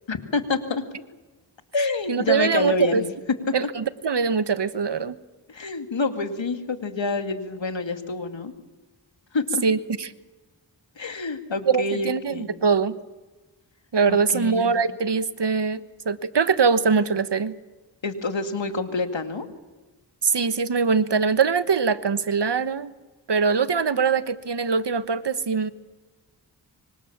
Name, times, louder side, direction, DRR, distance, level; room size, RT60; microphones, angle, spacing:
voice 1, 0.1-0.8 1.7-3.1 5.5-8.5 9.3-9.6 11.0-12.5 14.1-14.8 18.0-19.5, left 3 dB, 75° left, 7 dB, 2.5 m, -27 dB
voice 2, 2.1-3.0 3.5-5.2 9.6-10.1 11.7-13.0 13.9-17.6 20.2-22.9 23.3-25.7, right 5 dB, 65° right, 13 dB, 1.2 m, -22 dB
25.0 x 25.0 x 7.3 m, 1.2 s
cardioid pair, 45°, 45 cm